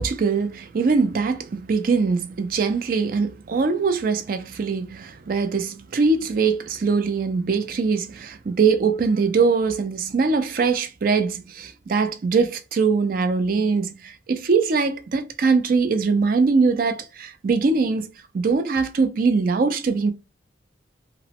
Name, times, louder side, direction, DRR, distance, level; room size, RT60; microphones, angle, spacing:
voice 1, 0.0-20.1, right 4 dB, 50° right, 0.4 m, -22 dB
3.0 x 2.0 x 2.8 m
head